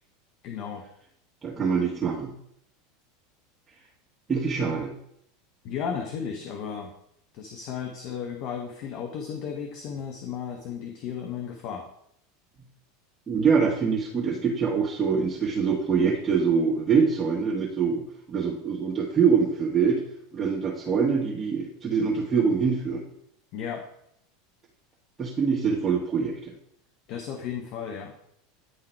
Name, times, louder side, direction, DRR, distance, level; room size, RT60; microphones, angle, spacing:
voice 1, 0.4-0.8 5.6-6.9 7.3-11.9 23.5-23.9 27.1-28.1, left 7 dB, 50° left, 4 dB, 1.0 m, -34 dB
voice 2, 1.4-2.3 4.3-4.9 13.3-20.0 20.3-23.0 25.2-26.5, right 5 dB, 20° right, -6 dB, 1.7 m, -24 dB
10.0 x 3.8 x 4.6 m, 0.72 s
figure-of-eight pair, 80°, 0 cm